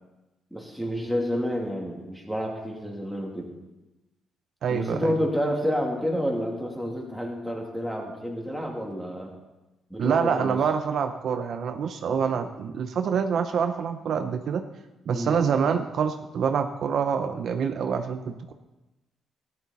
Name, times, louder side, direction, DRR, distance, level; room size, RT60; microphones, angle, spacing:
voice 1, 0.5-3.5 4.7-9.3 9.9-10.6 12.0-12.2 15.1-15.4, equal, ahead, -1 dB, 2.8 m, -29 dB
voice 2, 4.6-5.1 10.0-14.6 15.1-18.5, right 6 dB, 65° right, 7 dB, 0.7 m, -26 dB
13.0 x 10.5 x 4.2 m, 1.0 s
cardioid pair, 90°, 0 cm